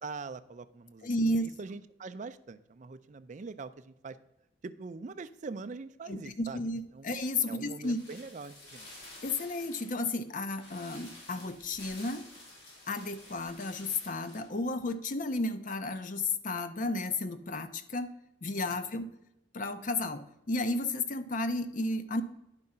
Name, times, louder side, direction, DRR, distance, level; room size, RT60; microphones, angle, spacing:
voice 1, 0.0-4.2 4.6-7.1 7.5-8.9, right 4 dB, 40° right, 13 dB, 0.4 m, -43 dB
voice 2, 1.0-1.5 6.1-8.0 9.2-12.3 12.9-18.1 18.4-19.1 19.5-22.2, left 2 dB, 45° left, 10 dB, 0.6 m, -33 dB
sound 1, 7.8-14.5 14.8-14.9, left 1 dB, 75° left, 3.6 m, -51 dB
10.5 x 4.8 x 5.4 m, 0.87 s
head